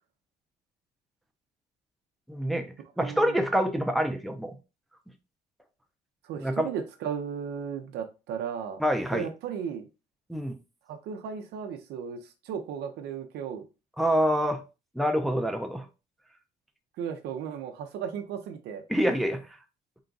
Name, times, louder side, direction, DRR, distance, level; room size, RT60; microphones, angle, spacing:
voice 1, 2.3-4.6 6.4-6.7 8.8-9.3 10.3-10.6 14.0-14.6 15.0-15.9 18.9-19.4, equal, ahead, 0.6 m, -26 dB
voice 2, 3.0-3.4 6.2-8.8 9.1-9.9 10.9-13.7 17.0-18.8, right 7 dB, 80° right, 0.7 m, -35 dB
3.9 x 2.4 x 3.8 m
cardioid pair, 110°, 17 cm